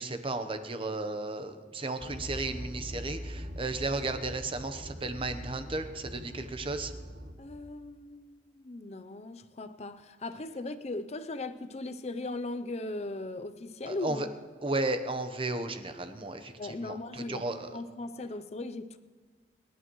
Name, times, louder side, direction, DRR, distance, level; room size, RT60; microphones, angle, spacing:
voice 1, 0.0-6.9 13.9-14.3 14.6-17.8, right 2 dB, 30° right, 0.9 m, -34 dB
sound 1, 2.0-7.3, equal, 65° right, 2.4 m, -42 dB
voice 2, 7.4-14.3 16.6-19.0, left 2 dB, 40° left, 0.6 m, -38 dB
28.0 x 11.5 x 3.1 m
head